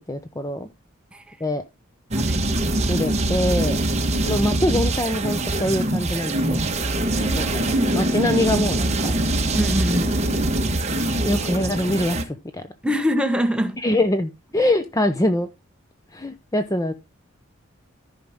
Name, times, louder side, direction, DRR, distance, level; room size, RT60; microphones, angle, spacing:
voice 1, 0.1-0.7 1.4-1.6 2.9-3.8 4.3-6.6 7.3-7.6 7.9-9.1 11.2-12.6 13.8-15.5 16.1-16.9, left 1 dB, 15° left, 0.7 m, -23 dB
sound 1, 2.1-12.2, right 1 dB, 30° right, 1.4 m, -23 dB
voice 2, 7.1-8.2 9.5-10.2 12.8-13.8, equal, 5° right, 1.1 m, -25 dB
14.0 x 5.7 x 3.6 m
head